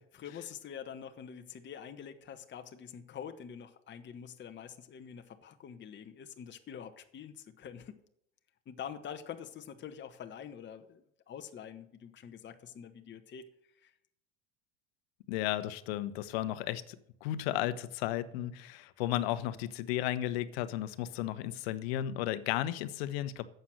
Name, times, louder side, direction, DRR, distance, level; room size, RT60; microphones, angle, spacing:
voice 1, 0.0-8.0 8.7-13.9, left 8 dB, 35° left, 7 dB, 1.3 m, -46 dB
voice 2, 15.3-17.0 17.2-23.4, left 13 dB, 70° left, 13 dB, 1.1 m, -34 dB
11.0 x 8.0 x 7.8 m, 0.75 s
hypercardioid pair, 80°, 32 cm